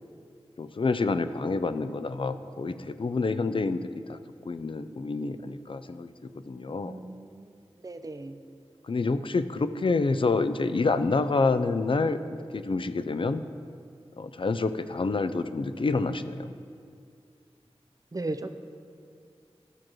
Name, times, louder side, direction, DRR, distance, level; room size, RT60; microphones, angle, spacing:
voice 1, 0.6-3.8 4.1-4.2 4.5-6.1 6.5-7.0 8.9-13.4 14.2-16.5, left 3 dB, 55° left, 11 dB, 0.4 m, -28 dB
voice 2, 6.8-7.5 7.8-8.4 18.1-18.5, right 2 dB, 35° right, 9 dB, 0.5 m, -36 dB
13.0 x 6.2 x 3.0 m, 2.3 s
wide cardioid pair, 50°, 11 cm